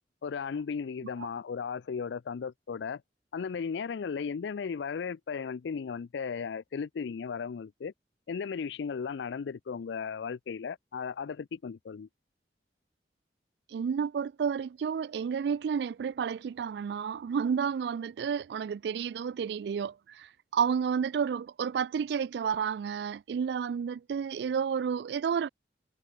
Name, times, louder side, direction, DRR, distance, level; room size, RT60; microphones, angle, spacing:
voice 1, 0.2-3.0 3.3-7.9 8.3-12.1, left 6 dB, 80° left, 0.4 m, -36 dB
voice 2, 13.7-20.3 20.5-25.5, right 7 dB, 65° right, 0.3 m, -31 dB
head